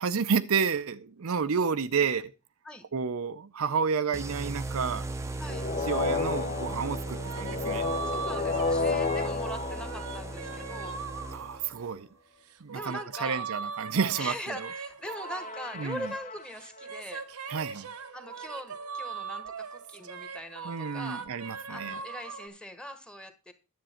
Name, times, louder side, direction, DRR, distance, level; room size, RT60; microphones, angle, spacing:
voice 1, 0.0-2.3 2.9-5.1 5.8-7.9 11.3-12.1 12.6-14.7 15.7-16.1 17.5-17.9 20.6-22.0, right 6 dB, 70° right, 0.6 m, -30 dB
sound 1, 4.1-11.8, right 2 dB, 15° right, 0.6 m, -37 dB
sound 2, 5.5-10.8 15.1-16.8, left 4 dB, 35° left, 0.6 m, -32 dB
sound 3, 7.0-12.0 12.5-16.2 16.6-22.5, right 5 dB, 90° right, 1.0 m, -40 dB
voice 2, 8.1-11.0 12.7-13.4 14.2-17.2 18.1-21.2 21.7-23.5, equal, 5° left, 1.1 m, -41 dB
10.5 x 7.5 x 4.3 m
head